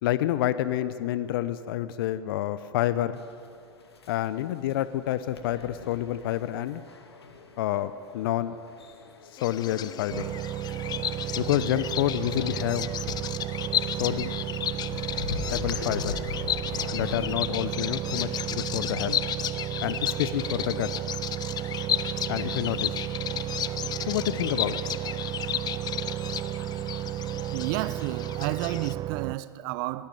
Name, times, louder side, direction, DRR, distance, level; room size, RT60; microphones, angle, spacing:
voice 1, 0.0-3.2 4.1-6.8 7.6-8.6 9.3-10.3 11.4-12.9 14.0-14.3 15.5-16.2 16.9-19.2 19.8-20.9 22.3-22.9 24.1-24.8, left 13 dB, 60° left, 0.9 m, -28 dB
sound 1, 3.2-17.4, left 4 dB, 80° left, 2.2 m, -42 dB
Bird vocalization bird call bird song, 9.4-28.9, left 10 dB, 30° left, 0.9 m, -33 dB
sound 2, 10.1-29.4, right 13 dB, 30° right, 0.4 m, -33 dB
voice 2, 27.5-30.1, right 17 dB, 55° right, 1.0 m, -31 dB
21.5 x 17.0 x 9.3 m
figure-of-eight pair, 90°, 13 cm